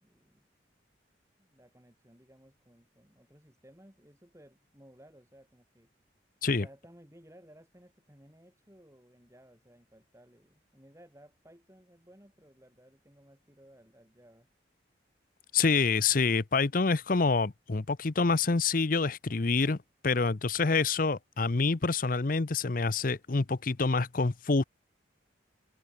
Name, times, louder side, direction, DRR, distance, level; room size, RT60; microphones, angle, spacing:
voice 1, 0.0-0.4 1.4-5.9 6.6-14.5, equal, 15° right, 3.6 m, -58 dB
voice 2, 15.5-19.8 20.0-24.6, left 4 dB, 45° left, 0.7 m, -27 dB
head